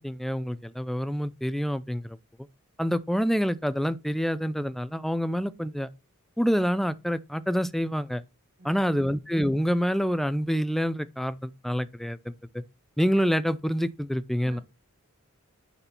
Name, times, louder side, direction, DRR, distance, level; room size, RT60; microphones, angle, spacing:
voice 1, 0.0-2.2 2.8-5.9 6.4-8.2 8.6-12.2 13.0-14.6, equal, ahead, 0.4 m, -27 dB
voice 2, 8.6-9.1 14.4-14.6, right 2 dB, 40° right, 2.4 m, -47 dB
9.8 x 4.3 x 4.3 m
head